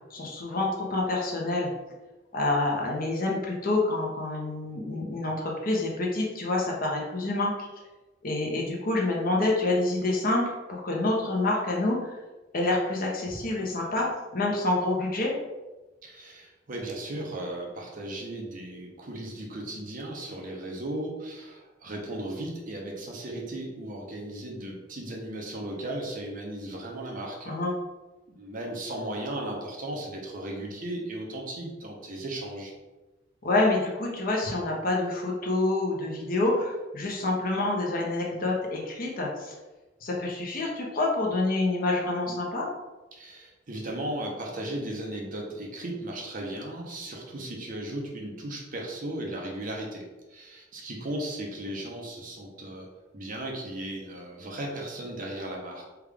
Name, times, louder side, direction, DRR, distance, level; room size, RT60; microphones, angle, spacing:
voice 1, 0.1-1.7 2.3-7.5 8.2-12.2 12.5-15.3 27.5-27.8 33.4-39.5 40.0-42.7, left 2 dB, 50° left, -2 dB, 0.7 m, -27 dB
voice 2, 16.0-27.5 28.4-32.7 43.1-50.0 50.3-52.9 53.1-55.9, right 1 dB, 45° right, 0 dB, 0.7 m, -36 dB
3.4 x 2.3 x 3.4 m, 1.1 s
head